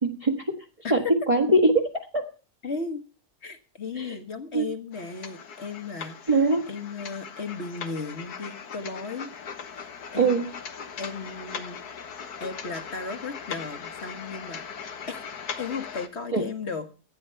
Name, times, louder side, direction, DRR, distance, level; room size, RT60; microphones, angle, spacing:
voice 1, 0.0-0.6 0.9-2.3 4.0-4.2 4.5-4.6 6.3-6.7 10.1-10.5 16.3-16.4, right 2 dB, 25° right, 1 dB, 1.6 m, -22 dB
voice 2, 2.6-3.0 3.4-9.3 9.7-10.3 11.0-11.8 12.4-14.7 15.1-15.2 15.6-17.0, left 4 dB, 45° left, 8 dB, 1.6 m, -35 dB
sound 1, 4.9-16.1, left 6 dB, 85° left, 1.8 m, -39 dB
14.5 x 9.6 x 5.7 m, 0.36 s
omnidirectional pair, 1.6 m